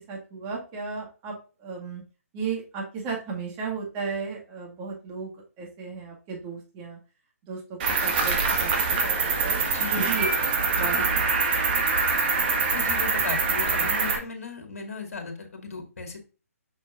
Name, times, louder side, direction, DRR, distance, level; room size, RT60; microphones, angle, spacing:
voice 1, 0.1-1.3 1.6-2.0 2.3-5.3 5.6-7.0 7.5-11.4, right 5 dB, 25° right, -1 dB, 2.0 m, -35 dB
Cricket, 7.8-14.2, right 4 dB, 40° right, 1.7 m, -24 dB
voice 2, 12.7-16.2, left 4 dB, 65° left, 3 dB, 2.1 m, -36 dB
6.5 x 6.0 x 2.5 m, 0.34 s
figure-of-eight pair, 140°, 8 cm